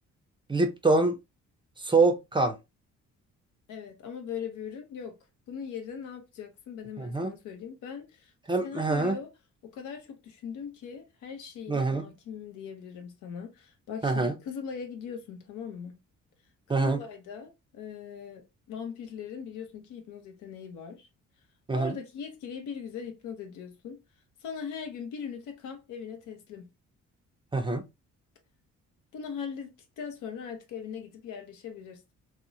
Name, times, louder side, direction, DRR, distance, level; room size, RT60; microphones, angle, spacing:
voice 1, 0.5-1.1 1.8-2.5 7.0-7.3 8.5-9.2 11.7-12.1 14.0-14.3 16.7-17.0 21.7-22.0 27.5-27.8, right 3 dB, 15° right, 0.5 m, -25 dB
voice 2, 3.7-5.2 5.5-8.3 8.6-9.3 9.6-15.9 16.7-18.4 18.7-21.1 21.7-24.0 24.4-26.7 29.1-32.0, left 6 dB, 85° left, 0.7 m, -40 dB
2.8 x 2.0 x 2.5 m
cardioid pair, 90°, 30 cm